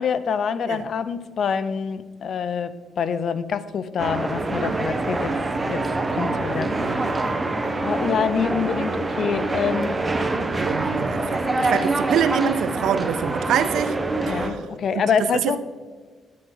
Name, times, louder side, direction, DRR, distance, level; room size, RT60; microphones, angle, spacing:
voice 1, 0.0-5.3 5.7-5.8 6.1-7.0 7.6-10.1 14.3-15.6, left 7 dB, 60° left, 0.6 m, -26 dB
sound 1, 4.0-14.5, right 2 dB, 20° right, 1.0 m, -25 dB
voice 2, 10.6-13.9 14.3-14.6 14.9-15.6, right 9 dB, 80° right, 0.6 m, -25 dB
11.5 x 9.0 x 3.9 m
cardioid pair, 90°, 0 cm